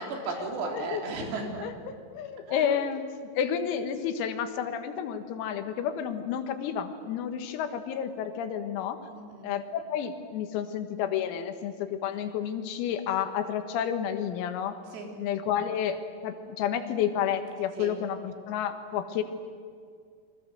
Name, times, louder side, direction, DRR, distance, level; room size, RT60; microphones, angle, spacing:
voice 1, 0.0-1.7 2.5-2.8 9.1-9.5 14.9-15.1 17.8-17.9, right 3 dB, 85° right, 2 dB, 6.3 m, -35 dB
voice 2, 1.6-3.0 3.4-9.0 9.4-14.8 15.2-19.2, left 8 dB, 85° left, 8 dB, 4.4 m, -30 dB
29.0 x 23.0 x 7.8 m, 2.2 s
omnidirectional pair, 6.0 m